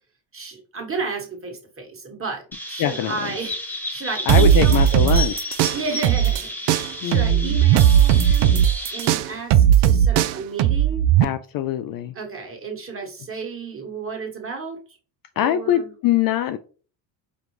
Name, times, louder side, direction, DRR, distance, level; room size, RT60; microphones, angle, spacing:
voice 1, 0.3-4.9 5.7-8.6 8.9-11.1 12.1-14.8 15.3-15.9, right 4 dB, 25° right, 1.4 m, -32 dB
Chirp tweet, 2.5-9.1, left 1 dB, 5° left, 0.8 m, -32 dB
voice 2, 2.8-3.2 4.3-5.6 7.0-7.6 11.2-12.2 15.4-16.6, left 11 dB, 45° left, 0.4 m, -23 dB
sound 1, 4.3-6.4 6.7-11.2, right 10 dB, 60° right, 0.5 m, -16 dB
5.2 x 2.4 x 3.1 m
supercardioid pair, 85°, 49 cm